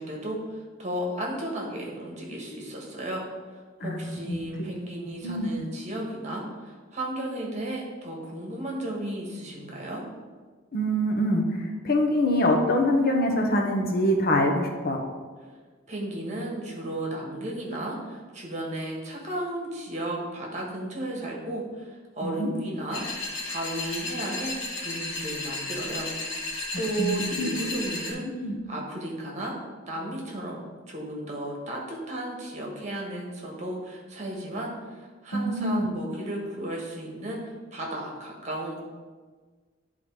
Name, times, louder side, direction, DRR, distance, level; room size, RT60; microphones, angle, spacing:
voice 1, 0.0-3.2 3.8-10.0 15.9-23.0 23.4-24.5 24.8-26.4 26.7-28.3 28.7-29.5 29.9-37.4 37.7-38.8, right 1 dB, 35° right, -1 dB, 1.6 m, -34 dB
voice 2, 3.8-4.4 5.2-5.5 10.7-15.0 22.2-22.5 26.7-27.5 28.4-28.6 35.3-35.9, left 1 dB, 50° left, 1 dB, 1.0 m, -25 dB
sound 1, 22.9-28.1, left 2 dB, 90° left, 2.1 m, -34 dB
10.5 x 3.8 x 4.8 m, 1.4 s
head